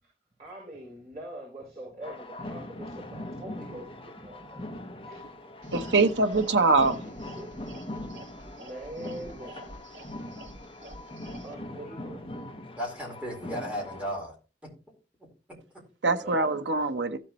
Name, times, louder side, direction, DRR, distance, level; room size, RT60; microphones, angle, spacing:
voice 1, 0.4-5.3 6.7-7.5 8.4-9.8 11.4-12.4 16.1-17.0, right 1 dB, 40° right, 6.4 m, -44 dB
sound 1, 2.0-14.2, left 1 dB, 30° left, 1.1 m, -41 dB
sound 2, 5.6-11.5, right 1 dB, 65° right, 4.0 m, -48 dB
voice 2, 5.7-7.0 16.0-17.2, right 3 dB, 85° right, 1.1 m, -23 dB
voice 3, 7.8-8.2 12.8-14.3, equal, 10° right, 4.3 m, -35 dB
16.0 x 7.4 x 3.1 m
head